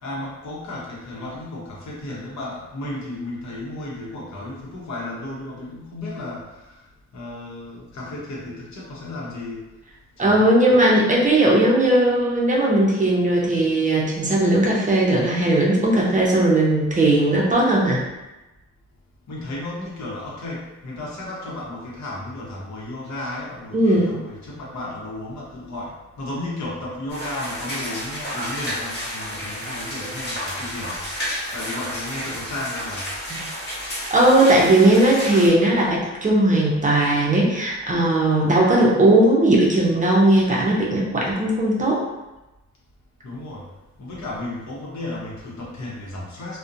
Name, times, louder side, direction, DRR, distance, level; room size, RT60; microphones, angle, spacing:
voice 1, 0.0-6.8 7.1-9.6 10.2-10.8 19.3-31.0 31.5-33.2 43.2-43.7 44.0-46.6, left 1 dB, 65° left, -4 dB, 0.8 m, -33 dB
voice 2, 10.2-18.0 23.7-24.2 33.3-33.4 34.1-42.0, right 1 dB, 25° right, -4 dB, 0.5 m, -18 dB
sound 1, 27.1-35.5, equal, 35° left, 1.0 m, -31 dB
2.5 x 2.1 x 2.5 m, 1.0 s
cardioid pair, 100°, 29 cm